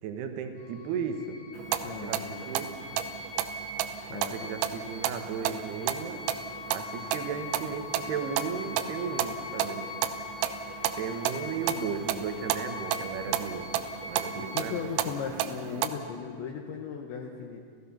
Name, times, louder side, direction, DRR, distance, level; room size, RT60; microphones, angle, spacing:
voice 1, 0.0-1.4 1.8-2.2 2.5-2.7 4.1-6.2 6.7-9.9 11.0-14.9, right 6 dB, 70° right, 6 dB, 2.9 m, -35 dB
sound 1, 0.6-14.8, left 4 dB, 55° left, 3.5 m, -42 dB
sound 2, 1.6-15.9, right 10 dB, 85° right, 3.4 m, -33 dB
voice 2, 1.8-2.5 4.1-4.3 14.4-17.6, left 7 dB, 75° left, 1 dB, 3.1 m, -37 dB
28.0 x 16.0 x 5.8 m, 2.2 s
omnidirectional pair, 5.9 m